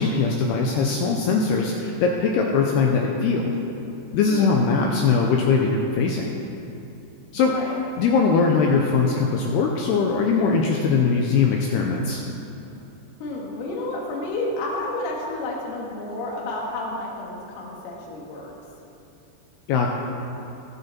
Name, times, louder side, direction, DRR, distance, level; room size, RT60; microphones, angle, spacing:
voice 1, 0.0-3.6 4.1-6.3 7.3-7.5 8.0-12.2 19.7-19.9, left 5 dB, 85° left, 0 dB, 2.4 m, -21 dB
voice 2, 7.4-7.8 13.2-18.5, left 2 dB, 65° left, -2 dB, 3.4 m, -31 dB
19.5 x 6.9 x 4.4 m, 2.8 s
omnidirectional pair, 5.3 m